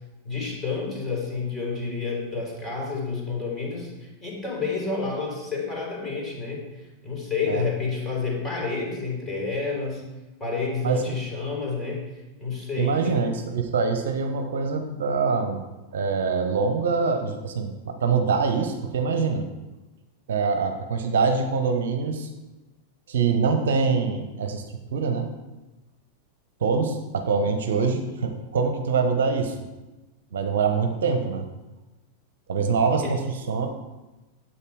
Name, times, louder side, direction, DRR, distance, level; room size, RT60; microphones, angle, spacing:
voice 1, 0.2-6.6 7.0-10.1 10.4-12.1 12.4-13.2 33.0-33.1, left 4 dB, 15° left, -3 dB, 3.9 m, -29 dB
voice 2, 10.8-11.2 12.8-15.6 15.9-19.5 20.3-22.3 23.1-24.6 24.9-25.3 26.6-29.5 30.3-31.5 32.5-33.7, right 5 dB, 60° right, 6 dB, 0.9 m, -24 dB
9.9 x 7.8 x 4.8 m, 1.1 s
figure-of-eight pair, 90°, 0 cm